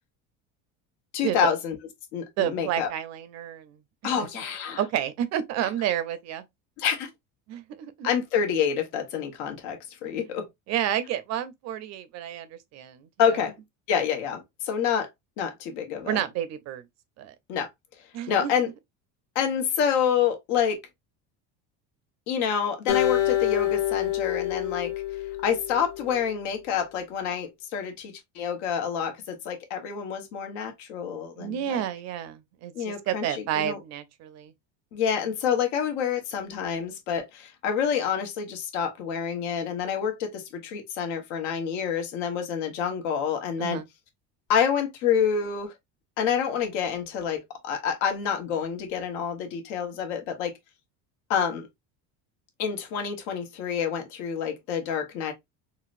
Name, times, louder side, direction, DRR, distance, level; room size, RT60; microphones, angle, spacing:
voice 1, 1.1-1.8 2.1-2.9 4.0-4.8 5.6-5.7 6.8-7.1 8.0-10.5 13.2-13.5 13.9-15.1 15.4-16.2 17.5-17.7 18.3-18.7 19.3-20.8 22.3-24.9 25.4-31.8 32.7-33.8 34.9-43.8 44.5-45.7 46.2-50.5 51.3-51.7 52.6-55.3, left 7 dB, 85° left, 1.1 m, -28 dB
voice 2, 2.4-4.3 4.8-6.4 7.5-8.1 10.3-10.4 10.7-13.4 16.0-16.8 17.2-17.3 18.1-18.5 31.4-34.5 43.6-43.9, right 11 dB, 45° right, 0.6 m, -30 dB
Acoustic guitar, 22.9-26.2, left 13 dB, 55° left, 1.1 m, -27 dB
3.9 x 2.1 x 2.5 m
cardioid pair, 140°, 36 cm